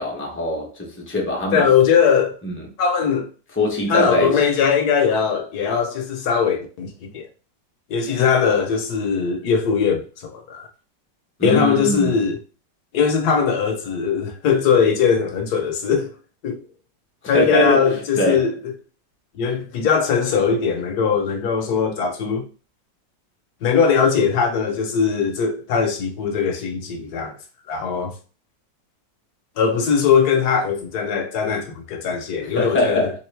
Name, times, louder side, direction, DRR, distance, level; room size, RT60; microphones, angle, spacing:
voice 1, 0.0-1.7 2.4-2.5 3.6-4.4 11.4-12.1 17.3-17.9 18.2-18.4 32.5-33.1, left 1 dB, 15° left, 0.4 m, -22 dB
voice 2, 1.5-2.4 2.8-3.3 3.9-7.2 7.9-10.7 11.4-12.4 12.9-16.1 16.4-16.6 17.2-18.7 19.3-22.4 23.6-27.4 27.7-28.1 29.6-33.1, left 6 dB, 65° left, 1.1 m, -20 dB
3.5 x 3.0 x 3.3 m
omnidirectional pair, 2.0 m